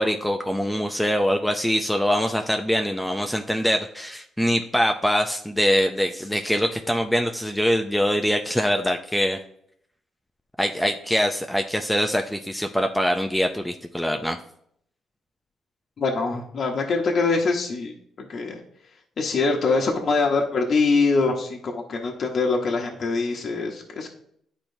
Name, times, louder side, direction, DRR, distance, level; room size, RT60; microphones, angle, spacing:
voice 1, 0.0-9.4 10.6-14.4, equal, 5° left, 4 dB, 0.4 m, -23 dB
voice 2, 16.0-18.6 19.2-24.1, left 4 dB, 50° left, 0 dB, 0.9 m, -24 dB
10.5 x 4.3 x 2.7 m, 0.69 s
cardioid pair, 90°, 0 cm